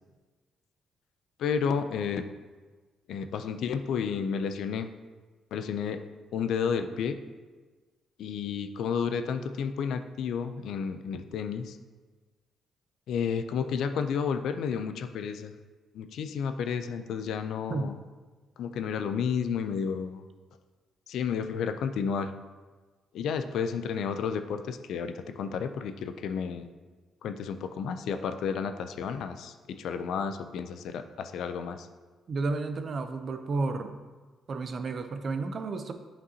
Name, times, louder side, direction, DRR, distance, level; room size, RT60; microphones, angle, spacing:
voice 1, 1.4-2.2 3.1-4.9 5.5-6.0 6.3-7.2 8.2-11.8 13.1-15.5 15.9-18.0 18.6-20.2 21.1-22.3 23.1-26.7 27.2-31.9, left 6 dB, 75° left, 9 dB, 0.4 m, -31 dB
voice 2, 32.3-34.0 34.5-35.9, right 3 dB, 45° right, 7 dB, 0.5 m, -32 dB
8.0 x 5.2 x 2.8 m, 1.3 s
cardioid pair, 90°, 0 cm